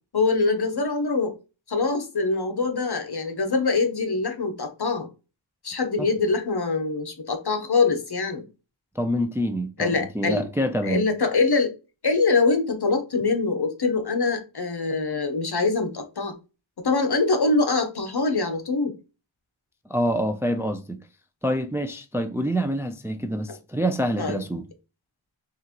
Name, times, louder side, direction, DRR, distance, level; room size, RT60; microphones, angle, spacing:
voice 1, 0.1-1.3 1.7-5.1 5.6-8.5 9.8-10.4 10.8-11.7 12.0-16.3 16.8-18.9 24.2-24.4, left 3 dB, 55° left, 0.9 m, -24 dB
voice 2, 9.0-11.0 19.9-21.0 21.4-24.7, equal, 5° right, 0.4 m, -26 dB
5.7 x 2.5 x 2.9 m
wide cardioid pair, 65°, 47 cm